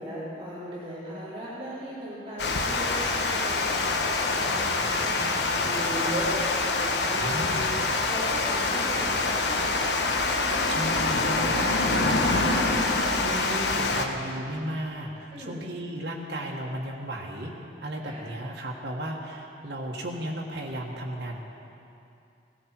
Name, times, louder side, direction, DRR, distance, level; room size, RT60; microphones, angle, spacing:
voice 1, 0.0-5.3 5.6-9.7 15.3-15.7 18.0-18.2, equal, 30° right, -10 dB, 4.2 m, -37 dB
Water, 2.4-14.1, left 3 dB, 85° left, 1.2 m, -25 dB
voice 2, 7.1-7.7 10.7-17.5 17.8-21.4, right 1 dB, 90° right, -3 dB, 1.6 m, -34 dB
17.5 x 15.5 x 4.6 m, 2.6 s
head